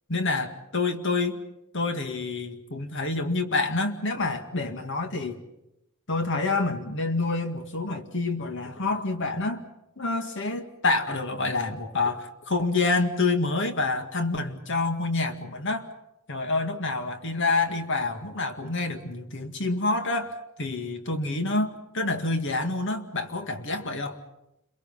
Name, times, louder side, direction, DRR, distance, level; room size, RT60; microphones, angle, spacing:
voice 1, 0.1-1.4 1.7-5.4 6.1-9.6 10.0-15.9 16.3-24.2, left 3 dB, 60° left, 7 dB, 2.0 m, -27 dB
29.5 x 22.5 x 5.6 m, 0.88 s
head